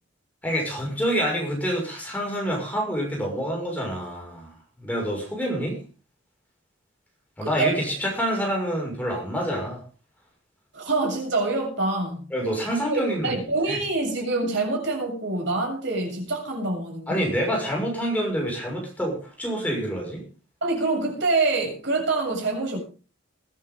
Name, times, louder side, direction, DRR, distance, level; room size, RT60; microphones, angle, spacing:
voice 1, 0.4-4.5 4.8-5.8 7.4-9.8 12.3-13.3 13.7-13.8 17.1-20.2, equal, 10° left, -1 dB, 5.9 m, -27 dB
voice 2, 10.7-12.3 12.9-17.2 20.6-22.8, right 3 dB, 65° right, 0 dB, 7.5 m, -26 dB
21.5 x 11.0 x 3.8 m, 0.36 s
head